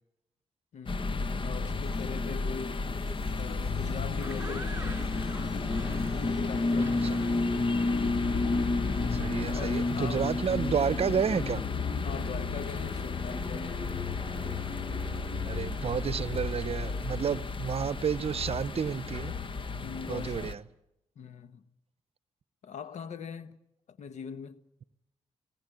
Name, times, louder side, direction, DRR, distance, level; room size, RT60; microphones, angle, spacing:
voice 1, 0.7-2.8 3.3-5.0 6.0-7.3 9.4-10.3 12.0-14.0 17.3-17.4 19.8-20.6 21.2-21.6 22.6-23.6 23.9-24.6, left 6 dB, 70° left, 1.0 m, -42 dB
sound 1, 0.9-20.5, left 3 dB, 45° left, 1.2 m, -31 dB
sound 2, 1.1-20.1, left 3 dB, 85° left, 4.2 m, -51 dB
sound 3, 4.2-17.4, right 2 dB, 15° right, 3.8 m, -49 dB
voice 2, 9.1-11.6 15.4-19.3 20.1-20.6, right 7 dB, 55° right, 0.8 m, -30 dB
19.5 x 17.0 x 9.1 m
supercardioid pair, 55°, 12 cm